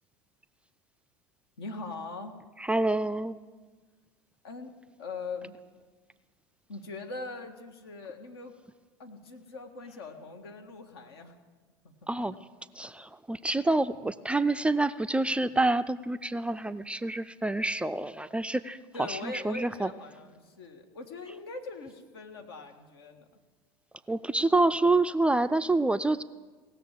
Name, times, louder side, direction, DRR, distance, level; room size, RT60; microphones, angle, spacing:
voice 1, 1.6-2.3 4.4-4.7 5.0-5.6 6.7-8.5 9.0-11.4 11.8-12.1 18.9-23.3, left 3 dB, 70° left, 4 dB, 1.6 m, -41 dB
voice 2, 2.6-3.4 12.1-12.4 12.7-19.9 24.1-26.2, right 2 dB, 10° right, 11 dB, 0.4 m, -27 dB
18.0 x 6.9 x 7.4 m, 1.4 s
figure-of-eight pair, 75°, 13 cm